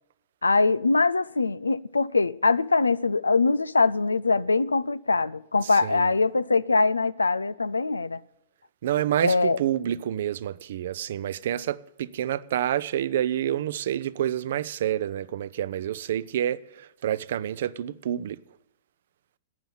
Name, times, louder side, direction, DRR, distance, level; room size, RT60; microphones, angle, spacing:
voice 1, 0.4-8.2 9.2-9.6, left 3 dB, 85° left, 0.5 m, -23 dB
voice 2, 5.6-6.1 8.8-18.4, right 11 dB, 60° right, 0.6 m, -28 dB
12.5 x 9.1 x 10.0 m
figure-of-eight pair, 105°, 0 cm